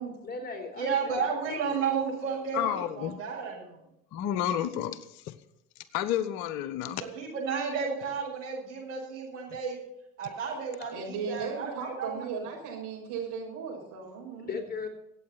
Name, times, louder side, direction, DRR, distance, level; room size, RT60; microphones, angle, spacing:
voice 1, 0.2-1.9 14.3-14.9, left 4 dB, 25° left, 3.3 m, -38 dB
voice 2, 0.8-3.8 6.9-9.8 10.2-11.7 12.0-12.2, right 5 dB, 65° right, 6.8 m, -32 dB
voice 3, 2.5-3.2 4.1-5.3 5.9-7.0, left 10 dB, 55° left, 1.1 m, -30 dB
voice 4, 10.9-14.6, right 5 dB, 50° right, 6.9 m, -36 dB
25.0 x 8.5 x 4.3 m
figure-of-eight pair, 60°, 39 cm